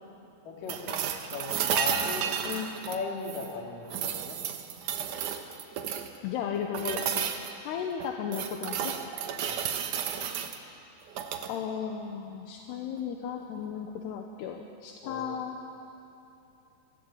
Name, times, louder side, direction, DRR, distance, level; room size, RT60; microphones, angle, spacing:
voice 1, 0.5-2.3 2.9-4.4 9.4-9.6 15.0-15.3, left 3 dB, 55° left, 0 dB, 4.0 m, -37 dB
sound 1, 0.7-3.5 3.9-6.2 6.7-7.5 8.0-10.6 11.1-11.5 13.6-13.7, right 8 dB, 65° right, 2.2 m, -32 dB
voice 2, 6.2-7.3 7.6-8.9 11.5-15.6, left 7 dB, 80° left, 3 dB, 3.2 m, -35 dB
27.0 x 15.5 x 8.8 m, 2.9 s
omnidirectional pair, 4.8 m